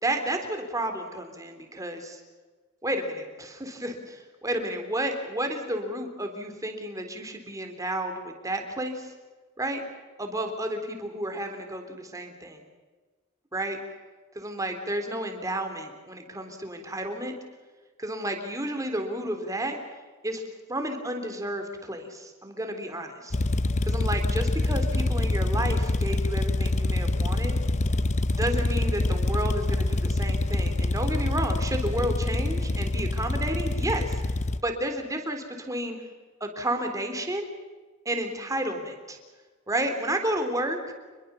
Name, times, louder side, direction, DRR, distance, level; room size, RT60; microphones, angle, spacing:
voice 1, 0.0-2.2 2.8-9.1 9.6-9.8 10.2-12.6 13.5-13.8 14.4-17.3 18.0-19.8 20.2-20.4 20.7-23.4 23.8-27.6 28.3-34.2 34.6-36.0 36.4-37.5 38.1-39.2 39.7-40.9, right 1 dB, 15° right, 5 dB, 3.8 m, -31 dB
sound 1, 23.3-34.6, left 2 dB, 35° left, 0.7 m, -26 dB
28.0 x 22.0 x 7.2 m, 1.3 s
head